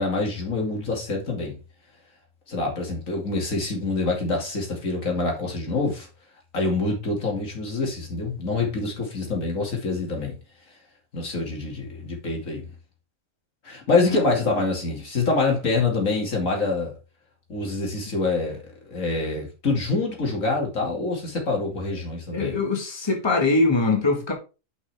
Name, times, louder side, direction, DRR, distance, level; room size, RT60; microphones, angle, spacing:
voice 1, 0.0-1.6 2.5-6.1 6.5-10.3 11.1-12.6 13.6-16.9 17.5-18.6 18.9-22.6, left 3 dB, 90° left, 2.9 m, -26 dB
voice 2, 22.3-24.3, left 3 dB, 20° left, 1.7 m, -22 dB
8.2 x 5.7 x 3.5 m
omnidirectional pair, 1.3 m